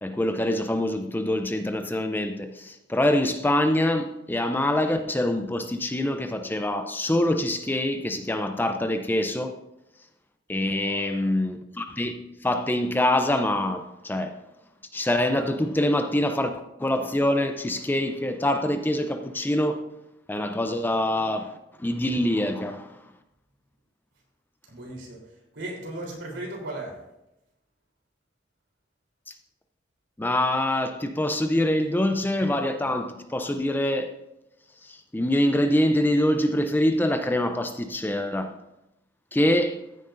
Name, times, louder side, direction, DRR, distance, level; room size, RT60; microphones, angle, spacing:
voice 1, 0.0-9.5 10.5-14.3 14.9-19.8 20.3-23.0 30.2-34.2 34.8-38.5 39.3-39.8, left 1 dB, 10° left, 0.5 m, -25 dB
voice 2, 10.6-11.3 24.7-25.2 25.5-26.9, right 1 dB, 70° right, 3.5 m, -37 dB
14.5 x 9.2 x 2.6 m
head